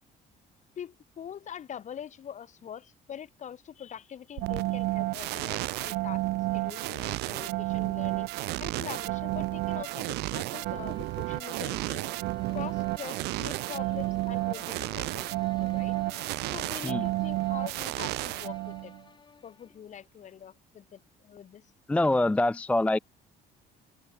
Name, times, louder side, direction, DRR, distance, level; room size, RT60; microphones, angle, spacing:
voice 1, 0.8-6.2 6.5-8.3 8.6-12.1 12.5-15.3 15.6-16.0 16.5-18.9 19.4-21.7, left 9 dB, 45° left, 1.5 m, -43 dB
sound 1, 4.4-19.0, right 20 dB, 80° right, 0.4 m, -31 dB
sound 2, 8.9-19.9, left 5 dB, 25° left, 1.3 m, -53 dB
voice 2, 21.9-23.0, left 2 dB, 10° left, 0.3 m, -24 dB
open air
cardioid pair, 110°, 17 cm